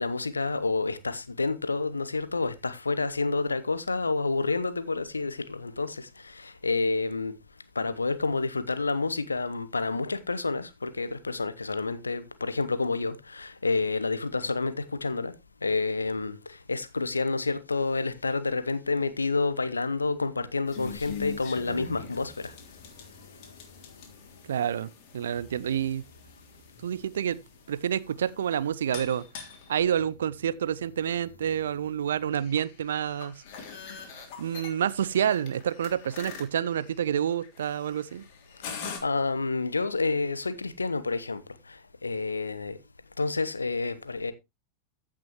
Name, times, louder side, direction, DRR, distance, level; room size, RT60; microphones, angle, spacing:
voice 1, 0.0-7.3 7.7-15.3 15.6-22.6 23.2-23.4 39.0-42.8 43.2-44.3, left 3 dB, 80° left, 0.9 m, -29 dB
sound 1, 20.6-39.0, left 6 dB, 45° left, 3.1 m, -44 dB
voice 2, 24.5-26.0 26.8-27.4 27.7-29.3 29.7-33.4 34.2-38.2, right 9 dB, 65° right, 0.5 m, -28 dB
15.0 x 6.0 x 3.0 m
figure-of-eight pair, 90°, 0 cm